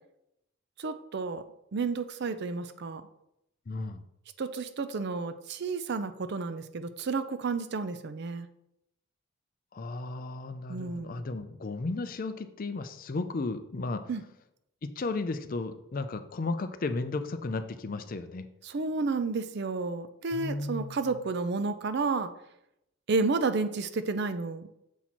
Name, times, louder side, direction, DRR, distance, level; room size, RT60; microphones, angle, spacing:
voice 1, 0.8-1.4 1.7-3.0 4.4-8.5 10.7-11.2 14.1-14.2 18.6-22.3 23.1-24.7, right 4 dB, 55° right, 11 dB, 0.4 m, -31 dB
voice 2, 3.7-4.0 9.7-14.1 14.8-18.5 20.3-21.1, left 3 dB, 40° left, 10 dB, 0.5 m, -34 dB
7.2 x 4.2 x 4.4 m, 0.82 s
head